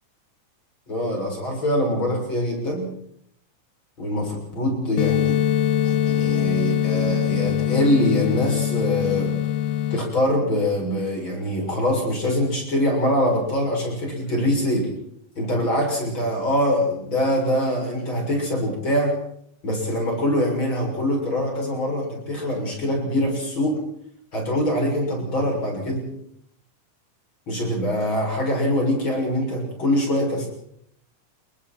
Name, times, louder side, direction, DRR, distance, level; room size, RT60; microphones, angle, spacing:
voice 1, 0.9-2.9 4.0-5.4 5.8-9.4 9.9-14.9 15.4-19.2 19.6-23.8 24.3-26.1 27.5-30.5, equal, 35° left, 0 dB, 7.7 m, -23 dB
sound 1, 5.0-10.0, left 11 dB, 85° left, 2.7 m, -22 dB
30.0 x 22.5 x 4.5 m, 0.72 s
omnidirectional pair, 3.7 m